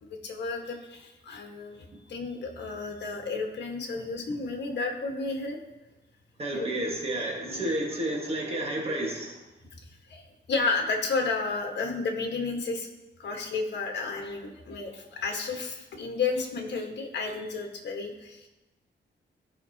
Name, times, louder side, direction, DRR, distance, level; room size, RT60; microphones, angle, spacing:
voice 1, 0.0-1.8 2.1-5.6 6.5-6.9 7.4-7.8 10.1-12.9 13.2-18.5, left 4 dB, 65° left, 2 dB, 1.3 m, -32 dB
voice 2, 6.4-9.3, right 1 dB, 30° right, -2 dB, 1.5 m, -31 dB
14.0 x 5.3 x 2.8 m, 1.1 s
wide cardioid pair, 175°, 19 cm